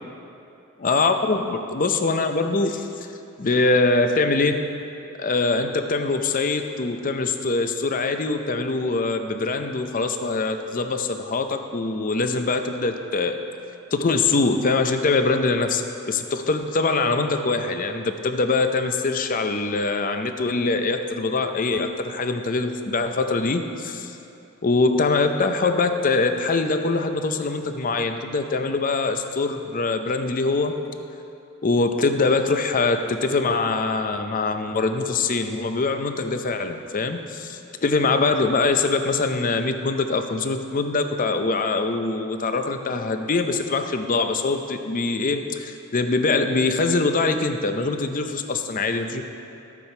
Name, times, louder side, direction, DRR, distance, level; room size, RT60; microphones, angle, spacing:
voice 1, 0.8-2.9 3.4-4.7 5.2-13.4 13.9-24.2 24.6-30.8 31.6-49.2, left 3 dB, 40° left, 7 dB, 0.5 m, -23 dB
12.5 x 8.4 x 4.4 m, 2.8 s
head